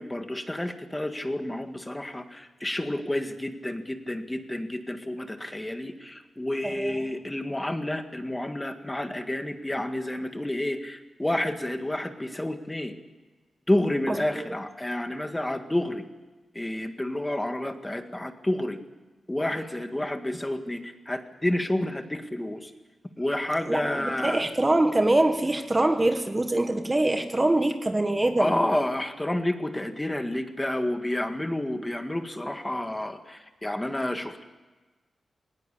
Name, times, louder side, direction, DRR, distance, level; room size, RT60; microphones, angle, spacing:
voice 1, 0.0-12.9 13.7-16.0 16.5-18.8 19.3-22.7 23.2-24.5 28.4-34.4, left 1 dB, 15° left, 6 dB, 1.8 m, -30 dB
voice 2, 6.6-7.0 14.1-14.4 23.7-28.6, right 2 dB, 20° right, 6 dB, 1.4 m, -24 dB
19.5 x 19.5 x 8.4 m, 1.2 s
wide cardioid pair, 110°, 0 cm